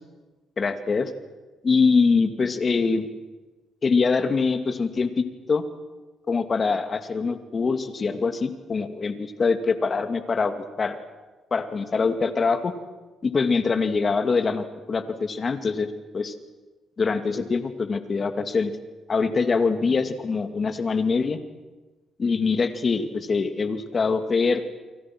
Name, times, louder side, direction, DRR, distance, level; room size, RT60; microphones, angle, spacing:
voice 1, 0.6-1.1 1.6-3.1 3.8-5.6 6.3-11.0 11.5-12.7 13.2-16.3 17.0-18.7 19.1-21.4 22.2-24.7, left 4 dB, 40° left, 8 dB, 2.4 m, -24 dB
29.5 x 24.0 x 6.2 m, 1.2 s
cardioid pair, 90°, 0 cm